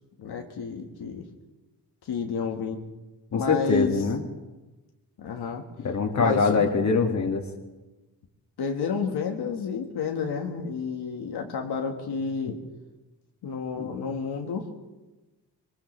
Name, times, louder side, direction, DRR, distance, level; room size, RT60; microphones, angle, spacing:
voice 1, 0.2-1.2 2.1-2.8 3.3-3.9 5.2-5.6 6.2-6.7 8.6-12.6 13.4-14.7, left 5 dB, 85° left, 2 dB, 1.6 m, -30 dB
voice 2, 3.3-4.2 5.8-7.5 11.4-11.5 13.8-13.9, left 4 dB, 45° left, 3 dB, 2.0 m, -24 dB
23.0 x 19.5 x 3.2 m, 1.1 s
cardioid pair, 95°, 38 cm